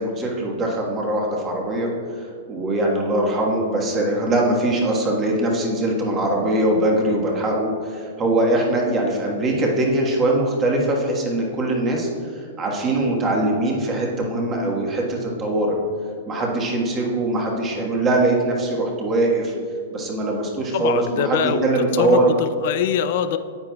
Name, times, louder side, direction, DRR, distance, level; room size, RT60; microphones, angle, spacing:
voice 1, 0.0-1.9 2.1-12.1 12.4-15.8 16.3-19.5 19.9-22.4, right 1 dB, 25° right, -1 dB, 1.4 m, -22 dB
voice 2, 20.7-21.7 22.0-23.4, left 9 dB, 55° left, 11 dB, 0.4 m, -23 dB
9.7 x 7.8 x 2.3 m, 2.2 s
hypercardioid pair, 145°, 0 cm